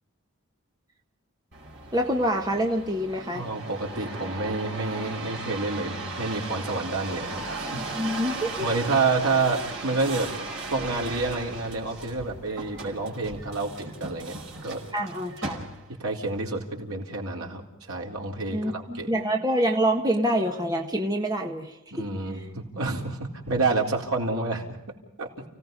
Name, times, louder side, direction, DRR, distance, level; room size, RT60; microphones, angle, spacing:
Car accelerate stop turn off door open and close., 1.5-16.1 16.7-17.2, right 3 dB, 55° right, 4.9 m, -37 dB
voice 1, 1.9-3.4 7.8-8.7 14.9-15.6 18.5-22.1, right 1 dB, 15° right, 2 dB, 1.5 m, -26 dB
voice 2, 3.3-7.8 8.6-10.3 10.7-14.4 14.6-14.8 15.9-19.1 21.9-24.8 25.2-25.4, right 3 dB, 80° right, 0 dB, 4.1 m, -29 dB
30.0 x 17.5 x 5.4 m, 0.89 s
head